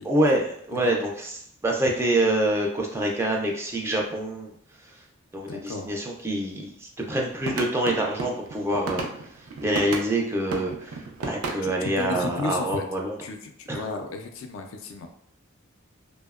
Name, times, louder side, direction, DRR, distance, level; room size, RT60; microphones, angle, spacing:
voice 1, 0.0-4.5 5.3-9.0 9.6-13.1 13.7-13.8, right 1 dB, 10° right, 0 dB, 0.3 m, -26 dB
voice 2, 5.4-5.9 11.6-12.9 13.2-15.1, left 4 dB, 65° left, 5 dB, 0.3 m, -34 dB
sound 1, 7.4-10.1 10.5-12.4, right 3 dB, 85° right, 0.4 m, -33 dB
2.7 x 2.0 x 2.3 m, 0.67 s
head